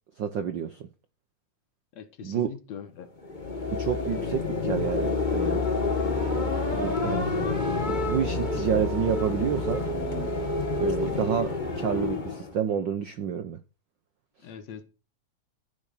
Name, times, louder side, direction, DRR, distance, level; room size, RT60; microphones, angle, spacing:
voice 1, 0.2-0.9 2.2-2.5 3.7-5.6 6.7-7.3 7.9-9.9 10.8-13.6, right 8 dB, 90° right, 1.0 m, -29 dB
voice 2, 1.9-3.1 14.4-14.8, left 7 dB, 65° left, 2.6 m, -41 dB
sound 1, 3.2-12.6, left 3 dB, 25° left, 1.0 m, -28 dB
sound 2, 6.0-10.3, right 11 dB, 70° right, 2.3 m, -42 dB
15.0 x 6.5 x 6.7 m
omnidirectional pair, 3.4 m